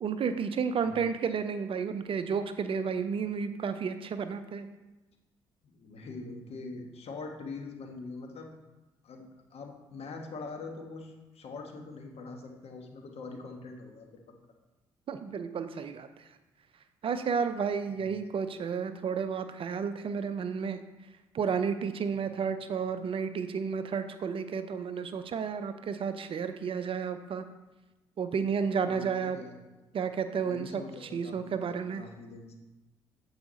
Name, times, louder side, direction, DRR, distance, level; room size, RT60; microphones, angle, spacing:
voice 1, 0.0-4.7 15.1-16.3 17.0-20.8 21.3-27.5 28.2-29.4 29.9-32.0, right 6 dB, 45° right, 10 dB, 0.6 m, -32 dB
voice 2, 5.6-8.5 9.0-14.2 18.0-18.1 22.2-22.5 28.8-29.6 30.4-32.6, left 3 dB, 50° left, 2 dB, 1.3 m, -43 dB
7.8 x 4.8 x 4.1 m, 1.1 s
hypercardioid pair, 50°, 13 cm